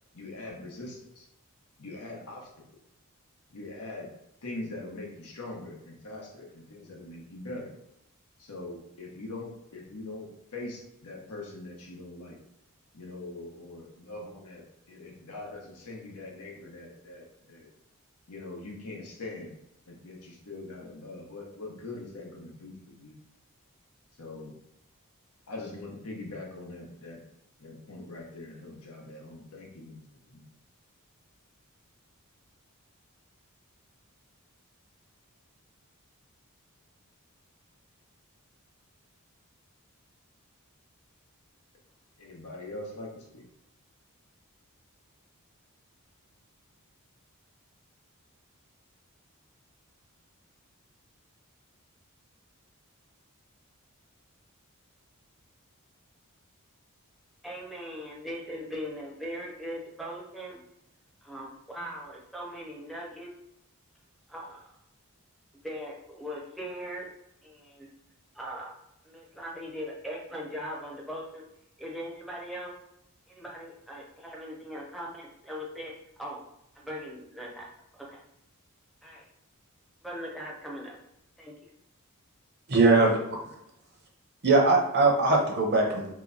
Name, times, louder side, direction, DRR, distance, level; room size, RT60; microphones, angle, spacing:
voice 1, 0.1-1.3 1.8-2.5 3.5-4.1 4.4-7.7 8.4-12.4 12.9-17.7 18.3-19.6 19.9-23.2 24.2-24.5 25.5-27.2 27.6-30.0 30.3-30.4 42.2-43.4, left 2 dB, 85° left, -1 dB, 0.9 m, -42 dB
voice 2, 57.4-60.6 61.2-63.3 64.3-64.6 65.6-67.1 67.4-67.9 68.3-68.7 69.0-71.4 71.8-72.7 73.3-75.9 76.2-76.4 76.7-78.2 79.0-79.2 80.0-81.0 81.4-81.7, equal, ahead, -4 dB, 0.6 m, -40 dB
voice 3, 82.7-83.2 84.4-86.1, right 3 dB, 50° right, 0 dB, 0.7 m, -21 dB
3.0 x 2.2 x 3.8 m, 0.80 s
head